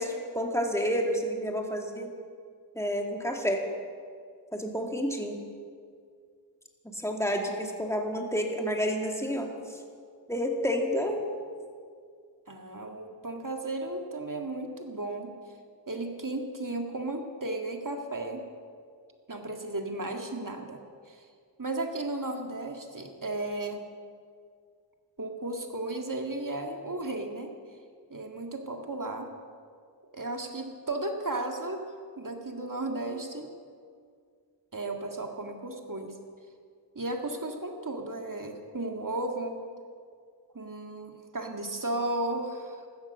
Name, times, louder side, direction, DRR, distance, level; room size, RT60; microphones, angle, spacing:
voice 1, 0.0-2.1 2.7-3.6 4.5-5.4 6.9-9.8 10.3-11.4, equal, 5° left, 1 dB, 2.5 m, -30 dB
voice 2, 12.5-15.4 15.9-18.5 19.3-20.8 21.1-21.3 21.6-23.8 25.2-27.5 28.1-29.3 30.0-31.8 32.2-33.5 34.7-36.1 37.0-39.6 40.5-42.9, right 2 dB, 50° right, 3 dB, 2.1 m, -34 dB
15.5 x 12.5 x 6.8 m, 2.1 s
wide cardioid pair, 50°, 42 cm